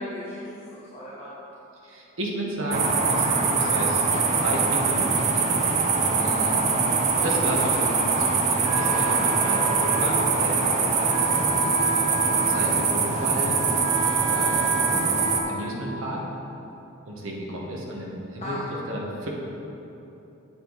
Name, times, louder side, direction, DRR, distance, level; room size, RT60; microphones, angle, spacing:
voice 1, 0.0-1.3 6.2-6.5 7.2-7.5 18.4-18.7, left 1 dB, 30° left, -10 dB, 1.2 m, -36 dB
voice 2, 1.8-4.0 4.4-5.7 7.2-11.8 12.4-13.6 14.3-16.2 17.1-18.6 18.9-19.3, equal, 60° right, -2 dB, 1.3 m, -33 dB
sound 1, 2.7-15.4, right 4 dB, 30° right, 0.6 m, -23 dB
Wind instrument woodwind instrument, 8.6-16.3, right 4 dB, 80° right, 1.0 m, -31 dB
7.6 x 7.4 x 4.0 m, 3.0 s
head